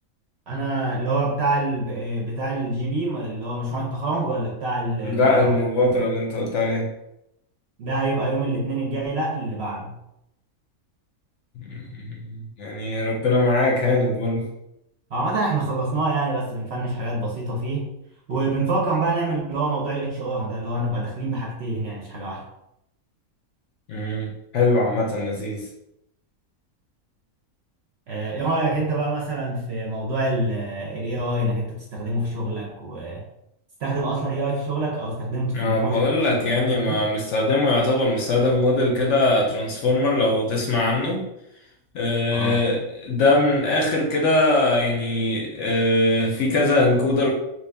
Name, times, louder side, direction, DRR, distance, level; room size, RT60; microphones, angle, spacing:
voice 1, 0.5-5.6 5.9-6.0 7.8-10.0 15.1-17.9 18.3-22.4 28.1-33.2 33.8-37.1 42.3-42.6, right 2 dB, 60° right, -2 dB, 0.7 m, -26 dB
voice 2, 5.0-6.9 11.6-14.5 23.9-25.7 35.5-41.2 41.9-47.3, left 2 dB, 65° left, 0 dB, 0.8 m, -21 dB
3.1 x 2.4 x 3.3 m, 0.83 s
omnidirectional pair, 1.5 m